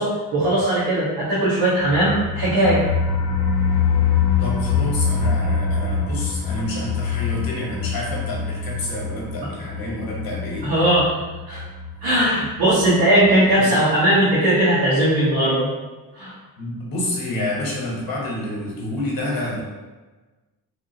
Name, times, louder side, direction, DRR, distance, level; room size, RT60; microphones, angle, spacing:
voice 1, 0.0-2.8 10.6-11.1 11.5-11.6 12.0-15.7 16.1-16.3, right 1 dB, 80° right, -10 dB, 1.2 m, -18 dB
sound 1, 1.8-12.5 12.8-12.9 13.3-13.4, left 6 dB, 85° left, 0.5 m, -24 dB
voice 2, 4.4-10.7 13.6-13.7 16.6-19.6, left 1 dB, 65° left, -3 dB, 1.2 m, -28 dB
3.4 x 2.6 x 2.7 m, 1.2 s
cardioid pair, 120°, 37 cm